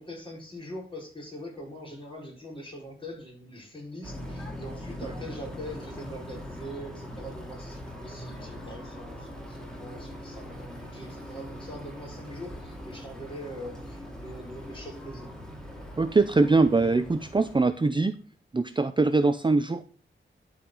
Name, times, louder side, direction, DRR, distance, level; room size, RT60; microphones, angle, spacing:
voice 1, 0.0-15.4, equal, 25° left, -2 dB, 4.5 m, -42 dB
sound 1, 4.0-17.7, equal, 5° left, 2.3 m, -41 dB
voice 2, 16.0-18.1 18.5-19.9, right 3 dB, 25° right, 10 dB, 0.5 m, -22 dB
12.0 x 5.0 x 3.8 m, 0.39 s
wide cardioid pair, 130°, 21 cm